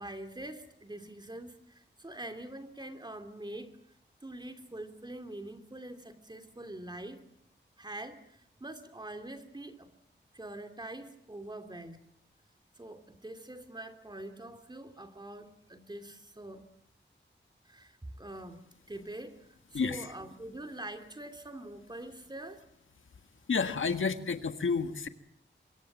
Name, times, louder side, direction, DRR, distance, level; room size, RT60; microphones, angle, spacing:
voice 1, 0.0-3.8 4.2-7.2 7.8-9.9 10.3-12.0 12.8-16.7 17.6-18.6 18.9-22.6, right 1 dB, 20° right, 7 dB, 2.6 m, -44 dB
voice 2, 19.7-20.1 23.5-25.1, left 5 dB, 80° left, 8 dB, 1.7 m, -30 dB
25.0 x 22.5 x 7.4 m, 0.68 s
wide cardioid pair, 80°, 20 cm